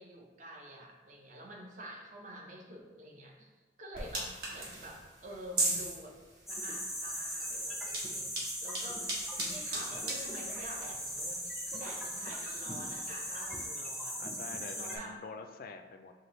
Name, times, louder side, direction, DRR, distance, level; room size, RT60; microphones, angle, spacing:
voice 1, 0.0-6.2 6.5-14.3 14.7-15.2, right 1 dB, 40° right, 0 dB, 0.7 m, -48 dB
sound 1, 3.9-13.7, right 2 dB, 60° right, 1.2 m, -40 dB
sound 2, 6.5-15.0, equal, ahead, 0.6 m, -39 dB
voice 2, 14.2-16.1, left 4 dB, 50° left, 6 dB, 0.3 m, -46 dB
5.9 x 2.7 x 3.0 m, 1.3 s
head